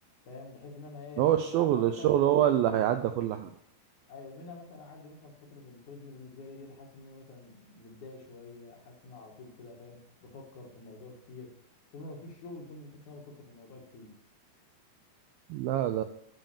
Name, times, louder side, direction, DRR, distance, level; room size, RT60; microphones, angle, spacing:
voice 1, 0.3-2.1 2.4-2.9 4.1-11.5 11.9-14.1, left 3 dB, 55° left, 0 dB, 2.8 m, -47 dB
voice 2, 1.2-3.5 15.5-16.0, right 11 dB, 85° right, 9 dB, 2.1 m, -25 dB
12.5 x 5.7 x 7.2 m, 0.69 s
omnidirectional pair, 4.8 m